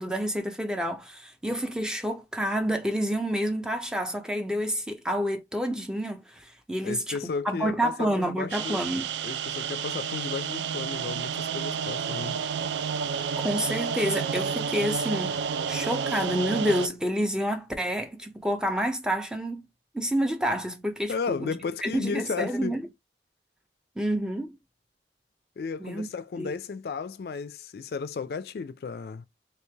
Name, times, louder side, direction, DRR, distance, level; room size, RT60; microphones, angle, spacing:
voice 1, 0.0-7.2 7.4-9.1 13.4-15.4 15.7-19.6 19.9-21.5 21.8-22.8 24.0-24.5 25.8-26.1 26.4-26.5, equal, 5° right, 0.5 m, -28 dB
voice 2, 6.8-8.8 9.2-12.4 21.1-22.8 25.6-29.3, left 5 dB, 60° left, 0.3 m, -34 dB
sound 1, 8.5-16.9, right 6 dB, 80° right, 0.3 m, -30 dB
3.1 x 2.9 x 3.3 m
head